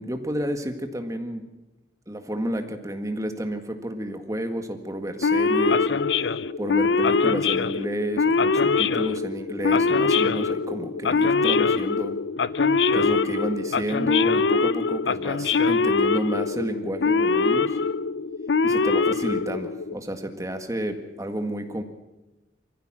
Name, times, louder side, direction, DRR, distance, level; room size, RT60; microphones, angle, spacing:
voice 1, 0.0-1.4 2.1-5.9 6.6-12.1 12.9-17.8 18.6-21.8, equal, 20° right, 6 dB, 1.8 m, -31 dB
Male speech man speaking / Siren, 5.2-19.9, left 4 dB, 80° left, 0.6 m, -23 dB
23.5 x 15.5 x 7.5 m, 1.0 s
head